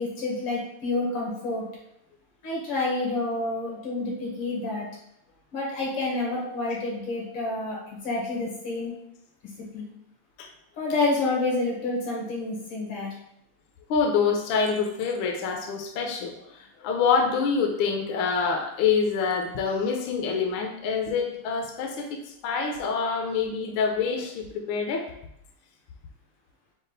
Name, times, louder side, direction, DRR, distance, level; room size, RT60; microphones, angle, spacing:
voice 1, 0.0-1.6 2.4-4.9 5.5-8.9 9.7-9.9 10.8-13.1, left 2 dB, 90° left, -3 dB, 2.3 m, -28 dB
voice 2, 13.9-25.1, left 5 dB, 75° left, 3 dB, 1.3 m, -26 dB
5.2 x 2.4 x 3.8 m, 0.78 s
omnidirectional pair, 2.4 m